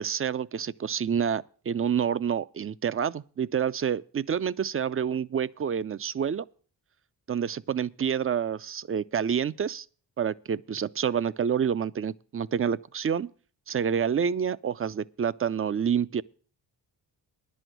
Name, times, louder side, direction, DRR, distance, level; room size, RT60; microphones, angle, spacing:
voice 1, 0.0-6.5 7.3-9.9 10.2-13.3 13.7-16.2, right 7 dB, 30° right, 0.5 m, -28 dB
10.5 x 6.4 x 9.1 m
cardioid pair, 60°, 44 cm